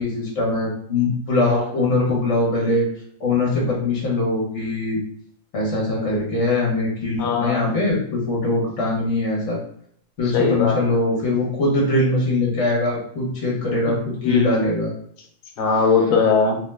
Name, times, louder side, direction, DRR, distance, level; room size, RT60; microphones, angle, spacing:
voice 1, 0.0-2.8 3.2-5.0 5.5-9.6 10.2-14.9, left 2 dB, 65° left, -3 dB, 1.1 m, -22 dB
voice 2, 7.2-7.7 10.3-10.8 13.9-14.0 14.2-14.6 15.6-16.6, left 5 dB, 90° left, 2 dB, 1.0 m, -19 dB
2.9 x 2.1 x 3.2 m, 0.64 s
omnidirectional pair, 1.4 m